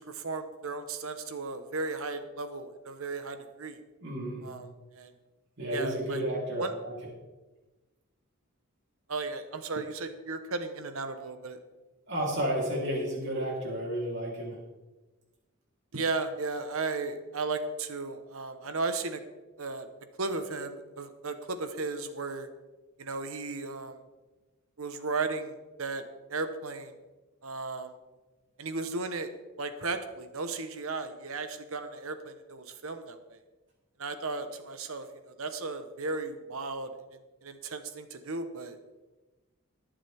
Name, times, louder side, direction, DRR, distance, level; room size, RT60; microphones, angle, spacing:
voice 1, 0.0-3.8 4.4-4.7 4.9-5.1 5.7-6.2 6.6-6.7 9.1-11.6 15.9-19.2 19.6-19.9 20.2-22.5 23.0-24.0 24.8-26.0 26.3-26.9 27.4-27.9 28.6-29.3 29.6-33.4 34.0-38.8, right 3 dB, 75° right, 9 dB, 1.1 m, -35 dB
voice 2, 4.0-4.5 5.6-6.9 12.1-14.6, right 1 dB, 50° right, -4 dB, 3.5 m, -32 dB
21.0 x 7.4 x 3.5 m, 1.2 s
head